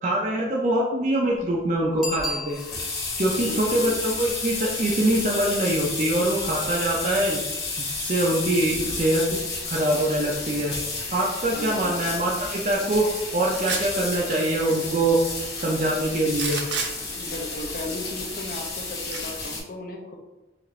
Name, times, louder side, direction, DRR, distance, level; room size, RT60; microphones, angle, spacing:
voice 1, 0.0-2.6 3.2-7.4 7.8-9.4 9.7-10.7 11.1-13.1 13.3-15.2 15.5-16.6, right 1 dB, 40° right, -3 dB, 0.5 m, -24 dB
Bicycle bell, 2.0-3.2 8.6-8.7, left 1 dB, ahead, 0.8 m, -33 dB
sound 1, 2.1-19.6, left 3 dB, 75° left, 1.3 m, -32 dB
voice 2, 3.3-3.9 11.5-12.0 17.1-20.1, left 1 dB, 50° left, 2 dB, 0.6 m, -36 dB
sound 2, 13.5-14.0 16.3-16.9 19.1-19.2, right 5 dB, 90° right, 0.6 m, -28 dB
4.9 x 2.5 x 3.1 m, 1.0 s
head